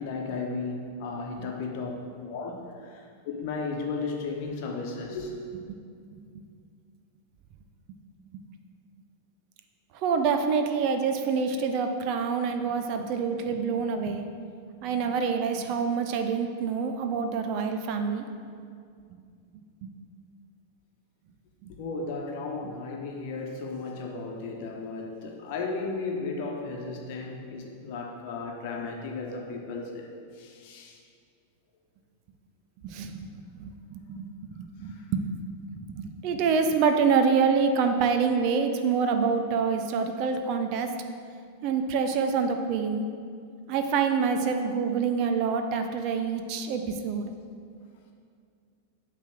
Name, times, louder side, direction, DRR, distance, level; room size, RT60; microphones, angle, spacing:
voice 1, 0.0-1.9 2.2-5.3 21.7-30.1 30.4-31.0, left 4 dB, 45° left, 1 dB, 1.1 m, -35 dB
voice 2, 10.0-14.2 14.8-18.2 19.8-19.9 21.6-21.7 32.8-33.3 33.5-35.2 36.0-40.9 41.6-43.0 43.7-47.3, right 5 dB, 45° right, 6 dB, 0.5 m, -26 dB
8.4 x 3.4 x 6.1 m, 2.3 s
figure-of-eight pair, 90°, 0 cm